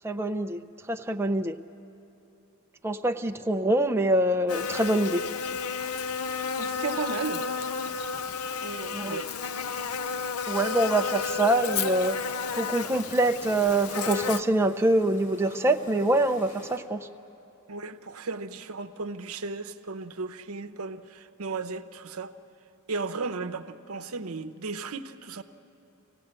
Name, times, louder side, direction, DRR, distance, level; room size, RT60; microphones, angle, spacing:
voice 1, 0.0-0.6 0.9-1.6 2.8-5.2 8.9-9.2 10.5-12.2 12.5-17.1, right 1 dB, 10° right, 5 dB, 0.5 m, -25 dB
Buzz, 4.5-14.4, left 5 dB, 80° left, 0.6 m, -32 dB
voice 2, 6.6-7.5 8.6-9.3 17.7-22.3 22.9-25.4, right 4 dB, 75° right, 8 dB, 0.8 m, -35 dB
sound 1, 11.3-16.8, left 1 dB, 55° left, 2.9 m, -50 dB
25.0 x 17.0 x 8.8 m, 2.9 s
head